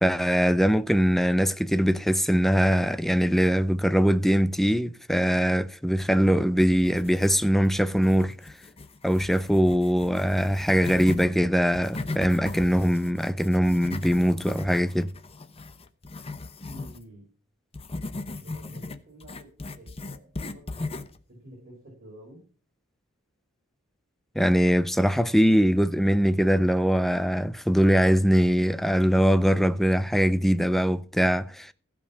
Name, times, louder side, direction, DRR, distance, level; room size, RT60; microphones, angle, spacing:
voice 1, 0.0-8.4 9.0-15.1 24.4-31.7, equal, ahead, 0.5 m, -22 dB
sound 1, 6.8-7.6 7.9-11.3 11.7-17.0 17.7-21.2, left 2 dB, 30° left, 0.9 m, -37 dB
voice 2, 16.6-17.3 18.1-22.4, equal, 50° right, 4.8 m, -49 dB
15.5 x 5.4 x 7.2 m
head